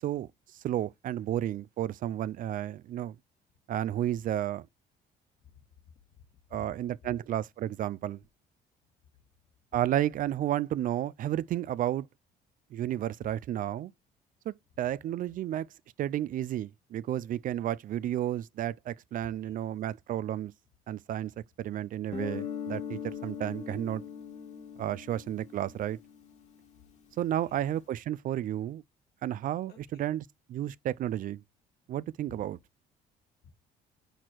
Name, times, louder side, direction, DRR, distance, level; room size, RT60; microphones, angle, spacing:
voice 1, 0.0-3.2 3.7-4.7 6.5-8.2 9.7-12.1 12.7-13.9 14.5-15.7 16.0-20.5 20.9-21.3 21.6-24.0 24.8-26.0 27.2-28.8 29.2-31.4 31.9-32.6, right 12 dB, 55° right, 0.4 m, -32 dB
voice 2, 5.4-6.2 6.5-6.6 7.0-7.1 19.4-19.7 27.5-27.6 29.7-30.0 33.4-33.5, left 8 dB, 65° left, 2.4 m, -55 dB
Guitar, 22.1-26.7, left 7 dB, 45° left, 2.0 m, -40 dB
9.0 x 4.3 x 4.5 m
cardioid pair, 110°, 17 cm